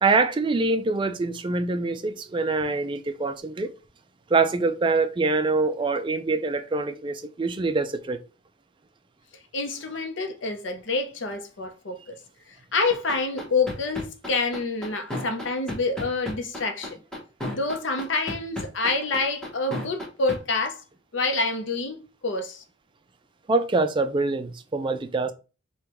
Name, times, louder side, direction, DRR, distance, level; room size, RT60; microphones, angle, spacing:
voice 1, 0.0-3.7 4.3-8.2 23.5-25.3, right 3 dB, 25° right, 0.3 m, -24 dB
voice 2, 9.5-12.2 12.7-17.0 17.5-20.8 21.1-22.6, left 3 dB, 65° left, 0.7 m, -27 dB
sound 1, 12.9-20.4, left 1 dB, 5° left, 0.9 m, -32 dB
5.0 x 2.3 x 3.0 m
head